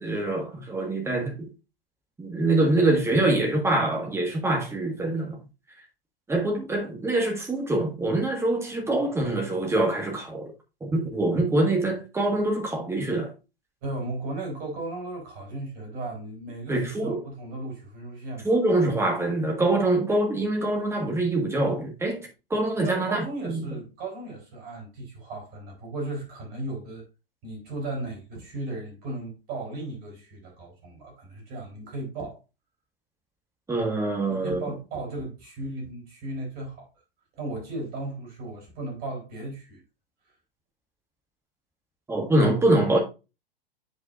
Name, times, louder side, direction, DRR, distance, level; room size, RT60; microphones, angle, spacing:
voice 1, 0.0-1.5 2.2-5.4 6.3-10.5 10.8-13.3 16.7-17.2 18.4-22.2 22.5-23.6 33.7-34.6 42.1-43.0, right 2 dB, 10° right, 1.6 m, -24 dB
voice 2, 13.8-18.5 22.8-27.0 27.4-32.4 34.3-36.9 37.4-39.8, right 2 dB, 30° right, 4.3 m, -36 dB
9.1 x 5.3 x 2.5 m
figure-of-eight pair, 105°, 29 cm